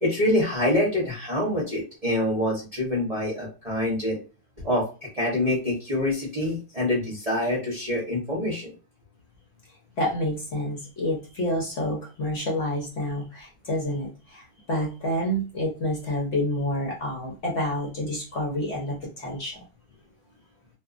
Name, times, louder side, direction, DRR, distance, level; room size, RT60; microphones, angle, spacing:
voice 1, 0.0-4.2 4.6-4.9 5.1-8.7, left 1 dB, 30° right, -6 dB, 0.7 m, -25 dB
voice 2, 10.0-19.6, left 1 dB, 55° left, -2 dB, 0.9 m, -28 dB
2.6 x 2.4 x 2.4 m, 0.33 s
omnidirectional pair, 1.8 m